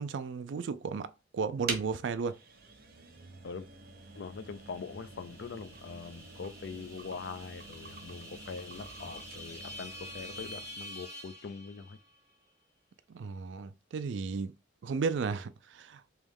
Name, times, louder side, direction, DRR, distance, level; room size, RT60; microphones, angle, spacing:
voice 1, 0.0-2.4 13.1-14.6 14.8-16.0, right 5 dB, 70° right, 0.4 m, -34 dB
sound 1, 1.7-10.8, right 4 dB, 55° right, 1.0 m, -46 dB
voice 2, 4.1-12.0, left 5 dB, 60° left, 0.4 m, -43 dB
sound 2, 4.2-12.2, equal, 15° right, 1.2 m, -48 dB
3.5 x 3.0 x 3.5 m
head